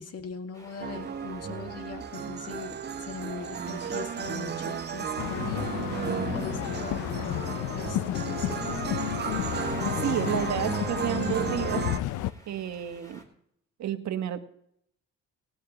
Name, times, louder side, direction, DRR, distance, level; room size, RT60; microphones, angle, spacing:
voice 1, 0.0-8.7, left 5 dB, 55° left, 5 dB, 1.9 m, -41 dB
sound 1, 0.5-13.2, right 1 dB, 10° left, 3.5 m, -51 dB
sound 2, 0.8-12.0, right 7 dB, 35° right, 0.7 m, -34 dB
sound 3, 5.2-12.3, left 14 dB, 85° left, 0.6 m, -32 dB
voice 2, 10.0-11.8 12.5-13.2 13.8-14.4, right 10 dB, 65° right, 8 dB, 1.3 m, -31 dB
19.0 x 17.5 x 3.0 m, 0.72 s
cardioid pair, 90°, 30 cm